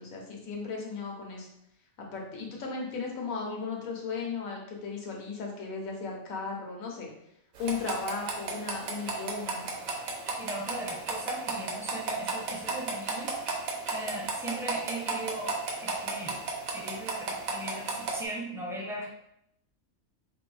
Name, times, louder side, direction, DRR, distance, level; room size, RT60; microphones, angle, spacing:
voice 1, 0.0-1.5 2.0-7.1 7.6-9.7, left 4 dB, 80° left, 0 dB, 1.3 m, -36 dB
sound 1, 7.6-18.2, right 3 dB, 85° right, 1.2 m, -34 dB
voice 2, 10.4-13.7 13.9-16.4 16.7-19.1, right 1 dB, 5° right, -3 dB, 0.4 m, -38 dB
5.1 x 2.6 x 3.3 m, 0.78 s
omnidirectional pair, 1.4 m